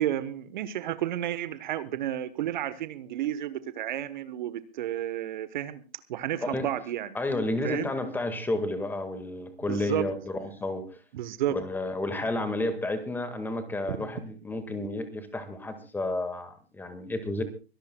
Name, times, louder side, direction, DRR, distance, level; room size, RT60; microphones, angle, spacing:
voice 1, 0.0-5.8 6.1-7.1 7.6-7.9 9.7-10.1 11.1-11.6 13.9-14.0, right 12 dB, 45° right, 13 dB, 1.2 m, -31 dB
voice 2, 7.1-10.9 11.5-17.4, left 2 dB, 5° left, 9 dB, 1.7 m, -31 dB
24.5 x 17.5 x 2.3 m, 0.34 s
hypercardioid pair, 130°, 32 cm